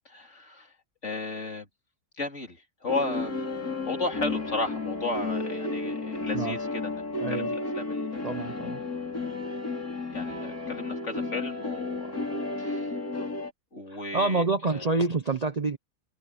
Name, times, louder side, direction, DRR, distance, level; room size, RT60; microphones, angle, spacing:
voice 1, 0.1-0.7 1.0-1.7 2.2-3.4 3.8-8.5 10.1-12.3 12.6-13.0 13.7-15.0, left 3 dB, 55° left, 4.0 m, -35 dB
sound 1, 2.9-13.5, left 3 dB, 90° left, 5.4 m, -32 dB
voice 2, 7.2-7.5 8.2-8.8 13.9-15.8, right 3 dB, 35° right, 0.7 m, -27 dB
omnidirectional pair, 1.5 m